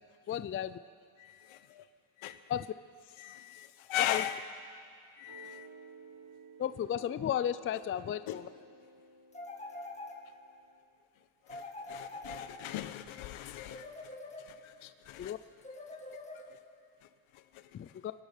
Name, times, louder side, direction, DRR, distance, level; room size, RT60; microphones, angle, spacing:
voice 1, 0.3-0.8 2.5-2.7 4.1-4.2 6.6-8.5 15.2-15.4 17.7-18.1, left 10 dB, 30° left, 14 dB, 0.4 m, -34 dB
voice 2, 1.2-1.8 2.2-2.4 3.2-4.4 5.2-5.7 8.3-8.4 11.5-11.6 11.9-13.9 14.5-15.3, left 12 dB, 75° left, 12 dB, 1.0 m, -38 dB
sound 1, 5.3-10.8, right 2 dB, 75° right, 4.9 m, -54 dB
sound 2, 9.3-10.6 11.5-13.0 13.7-14.9 15.6-16.8, left 2 dB, 15° left, 1.8 m, -45 dB
24.0 x 10.5 x 5.2 m, 2.1 s
cardioid pair, 100°, 49 cm